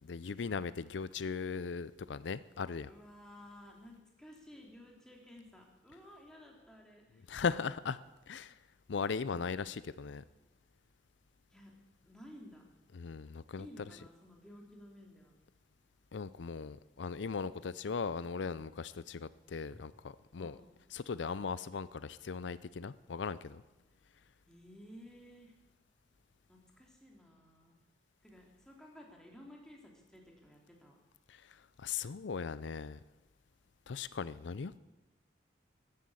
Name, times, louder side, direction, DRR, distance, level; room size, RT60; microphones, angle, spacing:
voice 1, 0.0-2.9 7.3-8.0 8.3-8.6 8.9-10.2 12.9-13.7 16.1-19.9 20.3-20.6 20.9-23.6 31.3-33.0 33.9-34.8, left 5 dB, 80° left, 16 dB, 0.5 m, -38 dB
voice 2, 2.9-7.2 11.5-11.7 12.0-12.7 13.6-15.3 19.7-19.8 20.4-20.7 24.5-25.5 26.5-27.8 28.2-31.0, left 1 dB, 5° left, -1 dB, 3.1 m, -55 dB
14.0 x 11.5 x 8.5 m, 1.1 s
head